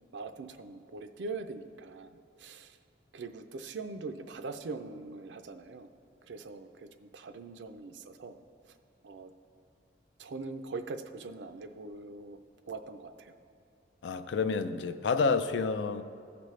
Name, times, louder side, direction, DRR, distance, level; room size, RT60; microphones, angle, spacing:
voice 1, 0.1-2.8 3.1-5.9 6.3-8.4 9.0-9.3 10.2-12.4 12.7-13.3, right 3 dB, 80° right, 0.5 m, -42 dB
voice 2, 14.0-16.0, left 4 dB, 80° left, 0.4 m, -29 dB
15.0 x 5.1 x 3.2 m
head